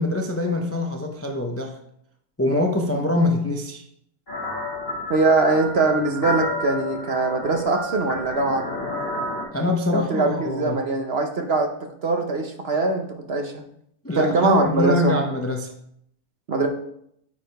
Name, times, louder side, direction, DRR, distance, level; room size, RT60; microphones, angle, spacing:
voice 1, 0.0-1.8 2.4-3.8 9.5-10.8 14.0-15.7, left 2 dB, 15° left, 2 dB, 0.5 m, -24 dB
sound 1, 4.3-9.4, left 1 dB, 40° left, 2.6 m, -30 dB
voice 2, 5.1-8.6 9.9-11.7 12.0-13.6 14.1-15.2 16.5-16.7, right 3 dB, 50° right, 4 dB, 1.0 m, -22 dB
8.5 x 4.9 x 4.7 m, 0.71 s
omnidirectional pair, 1.6 m